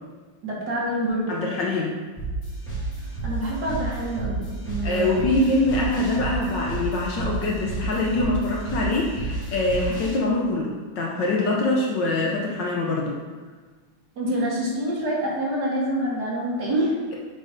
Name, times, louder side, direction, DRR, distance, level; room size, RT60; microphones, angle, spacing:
voice 1, 0.4-1.4 3.2-5.1 14.2-16.9, right 1 dB, 50° right, -5 dB, 1.8 m, -26 dB
voice 2, 1.3-1.9 4.8-13.2, left 2 dB, 65° left, -2 dB, 1.2 m, -24 dB
sound 1, 2.2-10.2, right 2 dB, 15° left, 2.1 m, -31 dB
6.5 x 3.9 x 5.1 m, 1.4 s
omnidirectional pair, 2.4 m